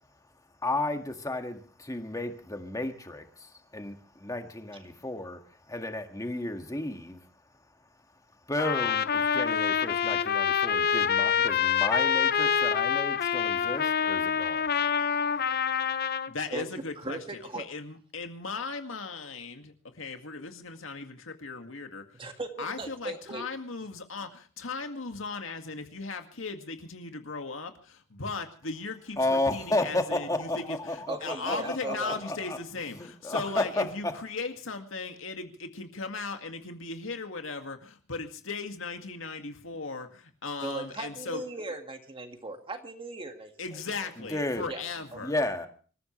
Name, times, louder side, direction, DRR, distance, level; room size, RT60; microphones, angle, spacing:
voice 1, 0.6-5.4 5.7-7.2 8.5-14.7 29.2-32.6 33.0-34.1 44.2-44.7 45.2-45.7, left 2 dB, 15° left, 1.9 m, -32 dB
Trumpet, 8.6-16.3, left 7 dB, 50° left, 0.7 m, -26 dB
voice 2, 16.3-17.2 17.5-22.0 22.6-41.4 43.6-45.3, left 4 dB, 80° left, 2.1 m, -37 dB
voice 3, 17.0-17.6 22.1-23.5 31.1-32.2 40.6-44.1 44.7-44.8 45.1-45.2, right 2 dB, 25° right, 2.0 m, -38 dB
26.5 x 14.5 x 3.2 m
head